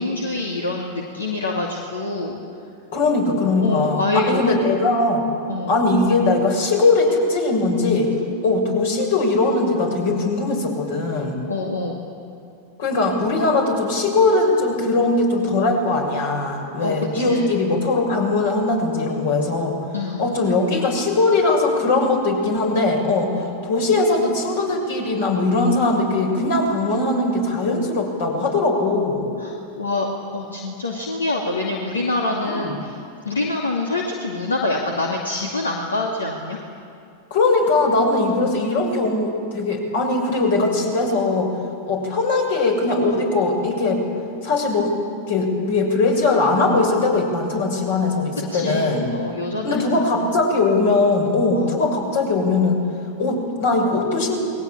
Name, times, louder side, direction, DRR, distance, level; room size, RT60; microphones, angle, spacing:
voice 1, 0.0-2.4 3.6-4.4 5.5-5.8 11.5-12.1 16.8-17.5 19.9-20.3 23.3-23.6 29.4-33.0 33.2-36.6 48.5-50.3 51.5-51.8, left 2 dB, 75° left, 0 dB, 2.5 m, -26 dB
voice 2, 2.9-5.2 5.7-8.1 8.4-11.4 12.8-19.8 20.2-23.3 23.6-29.3 32.4-32.8 37.3-41.5 41.9-44.0 44.4-44.9 45.3-49.1 49.6-52.8 53.2-54.4, left 3 dB, 55° left, 2 dB, 6.6 m, -20 dB
29.0 x 21.0 x 8.8 m, 2.5 s
figure-of-eight pair, 90°, 0 cm